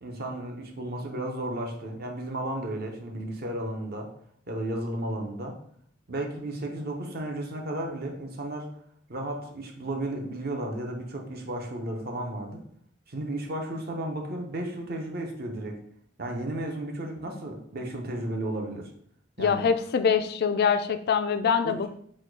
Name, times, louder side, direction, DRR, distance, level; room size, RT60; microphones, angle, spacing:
voice 1, 0.0-4.1 4.5-5.6 6.1-8.7 9.1-12.6 13.1-15.8 16.2-18.9 19.4-19.7 21.6-21.9, right 1 dB, 50° right, 2 dB, 0.7 m, -33 dB
voice 2, 19.4-21.9, left 6 dB, 50° left, 10 dB, 0.3 m, -24 dB
4.3 x 2.3 x 4.5 m, 0.64 s
head